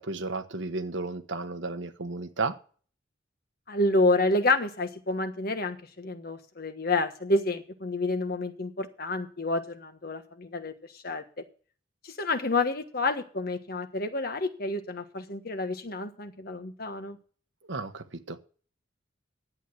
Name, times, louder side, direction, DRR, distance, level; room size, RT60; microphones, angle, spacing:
voice 1, 0.0-2.6 17.7-18.4, right 3 dB, 75° right, 1.1 m, -33 dB
voice 2, 3.7-10.7 11.0-11.2 12.0-17.2, left 2 dB, 50° left, 1.3 m, -29 dB
11.0 x 8.3 x 5.8 m
head